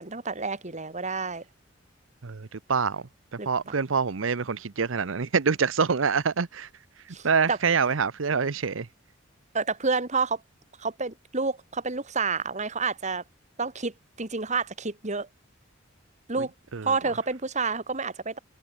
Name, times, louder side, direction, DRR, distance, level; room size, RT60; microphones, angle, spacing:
voice 1, 0.0-1.4 3.4-3.7 7.1-7.6 9.5-10.4 10.8-13.2 13.6-13.9 14.2-15.3 16.3-16.5 16.8-18.4, right 4 dB, 35° right, 2.3 m, -29 dB
voice 2, 2.2-3.0 3.5-6.7 7.2-8.9 16.7-16.9, right 5 dB, 80° right, 0.8 m, -25 dB
head